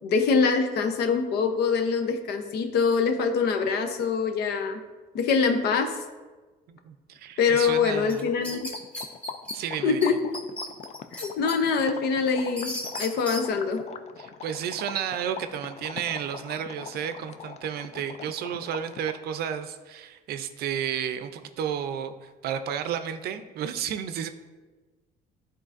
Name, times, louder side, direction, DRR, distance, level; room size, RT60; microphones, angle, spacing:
voice 1, 0.0-4.8 5.1-6.0 7.4-8.7 9.8-10.1 11.1-13.8, left 5 dB, 75° left, 6 dB, 0.7 m, -24 dB
voice 2, 6.7-8.3 9.5-10.2 14.2-24.3, right 9 dB, 70° right, 9 dB, 0.5 m, -32 dB
sound 1, 7.3-7.4 7.6-19.3, left 7 dB, 40° left, 0.4 m, -42 dB
sound 2, 8.1-9.6 10.0-10.1 10.3-11.6 12.0-13.4, equal, 5° left, 0.9 m, -35 dB
10.5 x 3.8 x 2.5 m, 1.3 s
cardioid pair, 110°, 17 cm